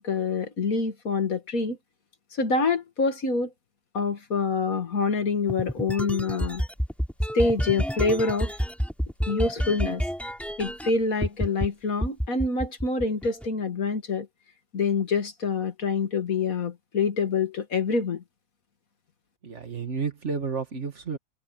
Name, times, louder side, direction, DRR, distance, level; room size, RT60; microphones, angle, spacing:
voice 1, 0.0-1.8 2.4-3.5 3.9-6.6 7.3-8.5 9.3-10.0 10.6-14.3 14.7-18.2, left 4 dB, 65° left, 2.3 m, -26 dB
sound 1, 5.5-10.9 11.2-11.7 12.0-13.5, equal, ahead, 3.9 m, -29 dB
voice 2, 19.4-21.2, right 5 dB, 50° right, 2.0 m, -31 dB
omnidirectional pair, 1.6 m